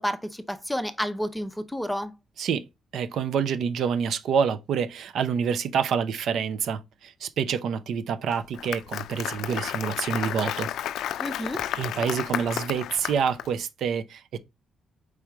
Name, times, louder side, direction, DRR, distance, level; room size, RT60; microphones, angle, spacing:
voice 1, 0.0-2.1 11.2-11.6, equal, 5° left, 0.5 m, -30 dB
voice 2, 2.9-10.7 11.8-14.4, right 7 dB, 65° right, 0.5 m, -27 dB
Applause, 8.3-13.5, left 11 dB, 75° left, 0.3 m, -32 dB
4.7 x 3.1 x 3.4 m
cardioid pair, 120°, 0 cm